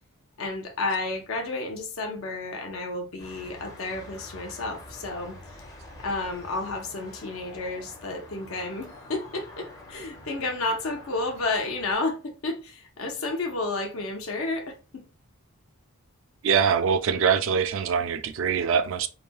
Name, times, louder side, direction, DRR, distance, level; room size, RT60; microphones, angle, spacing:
voice 1, 0.4-5.6 6.0-15.1, left 2 dB, 65° left, 0.6 m, -31 dB
sound 1, 3.2-11.9, left 1 dB, 15° left, 0.5 m, -46 dB
voice 2, 16.4-19.1, right 7 dB, 60° right, 0.3 m, -23 dB
3.1 x 2.6 x 2.2 m
head